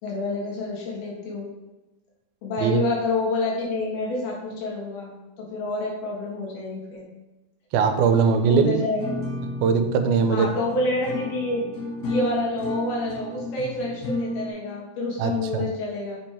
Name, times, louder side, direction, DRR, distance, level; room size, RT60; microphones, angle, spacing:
voice 1, 0.0-1.5 2.4-7.1 8.5-9.1 10.3-11.7 12.1-16.2, left 2 dB, 80° left, -3 dB, 3.5 m, -28 dB
voice 2, 7.7-8.8 9.6-10.5 15.2-15.6, right 6 dB, 85° right, 7 dB, 2.5 m, -20 dB
sound 1, 9.0-14.5, left 1 dB, 60° left, 2.0 m, -32 dB
7.4 x 3.6 x 4.4 m, 1.0 s
omnidirectional pair, 4.4 m